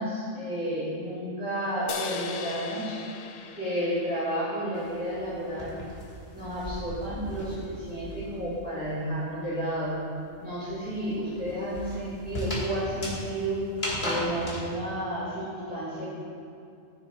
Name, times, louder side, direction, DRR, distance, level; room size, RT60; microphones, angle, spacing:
voice 1, 0.0-3.0 3.5-5.8 6.3-10.0 10.4-13.6 14.0-16.0, equal, 10° right, -12 dB, 2.0 m, -31 dB
sound 1, 1.9-5.4, left 6 dB, 70° left, 0.8 m, -39 dB
sound 2, 4.7-8.5 8.8-14.6, left 1 dB, 45° left, 1.7 m, -37 dB
13.5 x 6.9 x 2.3 m, 2.5 s
omnidirectional pair, 1.2 m